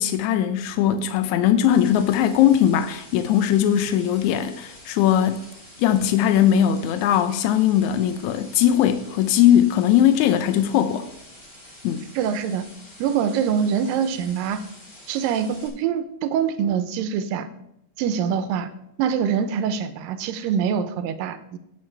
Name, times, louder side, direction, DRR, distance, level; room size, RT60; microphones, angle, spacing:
voice 1, 0.0-5.4 5.8-11.1 11.8-12.0, left 10 dB, 85° left, 1.7 m, -19 dB
sound 1, 1.7-15.7, left 1 dB, 25° left, 2.4 m, -47 dB
voice 2, 12.2-12.7 13.0-14.6 15.1-17.5 18.0-18.7 19.0-21.6, right 7 dB, 90° right, 2.4 m, -24 dB
17.0 x 6.6 x 3.3 m
omnidirectional pair, 4.0 m